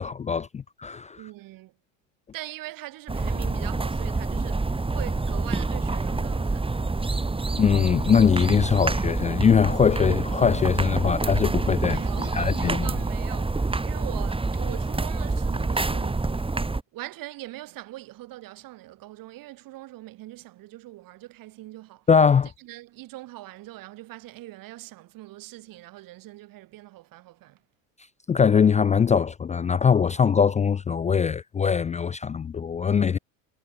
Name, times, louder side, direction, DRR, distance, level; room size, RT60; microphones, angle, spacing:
voice 1, 0.0-1.2 7.6-12.0 12.3-12.8 22.1-22.5 28.3-33.2, left 6 dB, 20° left, 0.4 m, -21 dB
voice 2, 1.2-1.7 2.3-6.8 11.9-16.3 16.9-22.1 22.6-27.6, right 17 dB, 60° right, 5.3 m, -42 dB
sound 1, 3.1-16.8, right 3 dB, 15° right, 3.5 m, -27 dB
hypercardioid pair, 80°, 38 cm